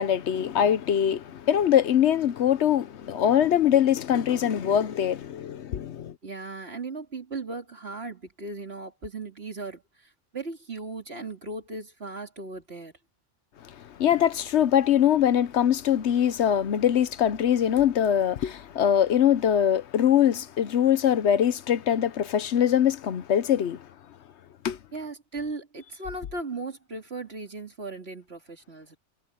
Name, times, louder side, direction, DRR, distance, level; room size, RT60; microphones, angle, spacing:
voice 1, 0.0-6.1 14.0-23.8 24.6-24.8, left 10 dB, 70° left, 1.0 m, -22 dB
voice 2, 6.2-9.8 10.3-12.9 24.9-29.0, right 3 dB, 55° right, 3.2 m, -37 dB
omnidirectional pair, 1.2 m